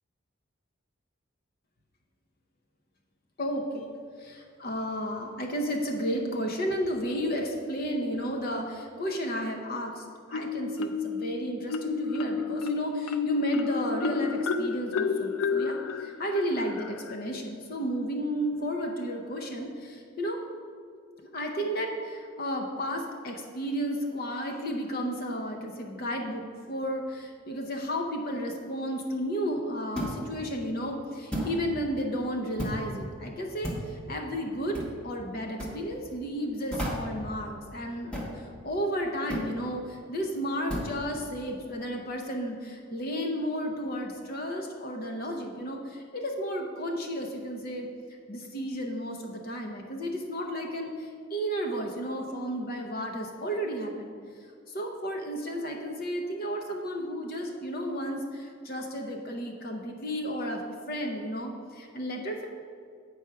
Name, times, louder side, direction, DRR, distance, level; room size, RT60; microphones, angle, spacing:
voice 1, 3.4-3.8 4.2-20.4 21.3-26.4 26.7-34.8 35.0-38.2 38.6-47.9 48.3-54.1 54.7-62.5, equal, 45° left, 2 dB, 0.7 m, -33 dB
Marimba xylophone, 10.3-11.2 11.7-17.2, left 5 dB, 85° left, 0.5 m, -30 dB
sound 1, 30.0-30.3 31.3-31.6 32.6-32.9 33.6-33.9 34.7-35.0 35.6-35.8 36.7-37.2 38.1-38.4 39.3-39.5 40.7-41.0, equal, 5° left, 1.1 m, -33 dB
8.4 x 4.8 x 5.7 m, 2.2 s
head